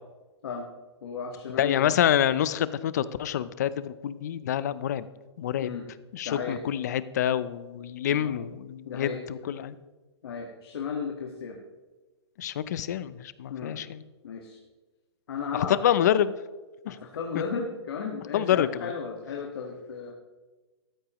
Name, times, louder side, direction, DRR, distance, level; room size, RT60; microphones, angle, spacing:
voice 1, 1.0-2.0 5.6-5.8 6.2-6.6 8.1-8.3 8.8-9.2 10.2-11.6 13.5-13.8 14.2-14.6 15.3-15.8 16.9-20.1, left 5 dB, 55° left, 1 dB, 1.6 m, -35 dB
voice 2, 1.6-5.1 5.4-5.8 6.1-9.7 12.4-14.0 15.5-16.3 16.8-17.0 17.3-17.4 18.3-18.9, left 10 dB, 40° left, 16 dB, 0.5 m, -27 dB
13.5 x 13.0 x 3.0 m, 1.2 s
hypercardioid pair, 170°, 15 cm